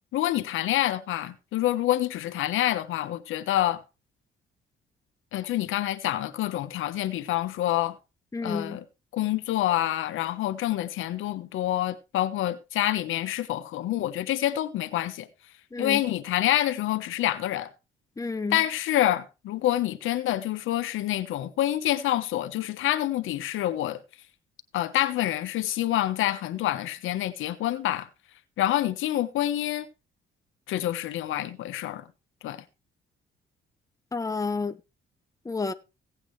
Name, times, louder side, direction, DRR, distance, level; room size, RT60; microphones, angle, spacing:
voice 1, 0.1-3.8 5.3-8.0 8.4-8.8 9.1-15.3 15.8-17.7 18.5-24.0 24.7-28.1 28.6-29.9 30.7-32.0 32.4-32.6, left 13 dB, 85° left, 1.2 m, -27 dB
voice 2, 8.3-8.8 15.7-16.0 18.2-18.6 34.1-34.8 35.4-35.7, left 4 dB, 15° left, 0.9 m, -30 dB
16.5 x 8.4 x 3.3 m
cardioid pair, 90°, 20 cm